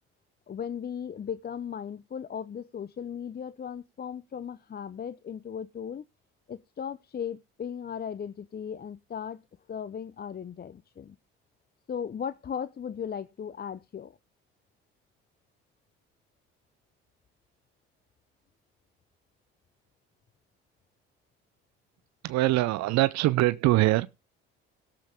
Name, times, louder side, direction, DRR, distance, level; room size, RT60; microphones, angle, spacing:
voice 1, 0.5-6.0 6.5-9.4 9.7-11.2 11.9-14.2, left 8 dB, 30° left, 0.7 m, -37 dB
voice 2, 22.2-24.1, right 18 dB, 65° right, 0.6 m, -23 dB
17.0 x 7.7 x 3.5 m
hypercardioid pair, 55°, 30 cm